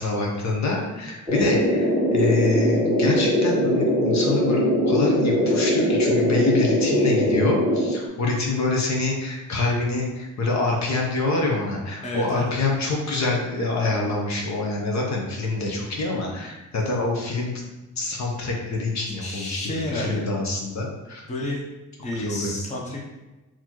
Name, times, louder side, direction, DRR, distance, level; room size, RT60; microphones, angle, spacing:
voice 1, 0.0-17.6 18.0-21.2 22.2-22.5, left 3 dB, 55° left, -1 dB, 0.9 m, -26 dB
sound 1, 1.3-8.0, equal, 15° right, 1.1 m, -21 dB
voice 2, 12.0-12.6 19.1-20.3 21.3-21.6 22.0-23.0, left 2 dB, 20° left, -3 dB, 0.7 m, -30 dB
4.0 x 2.9 x 3.0 m, 1.1 s
cardioid pair, 105°, 33 cm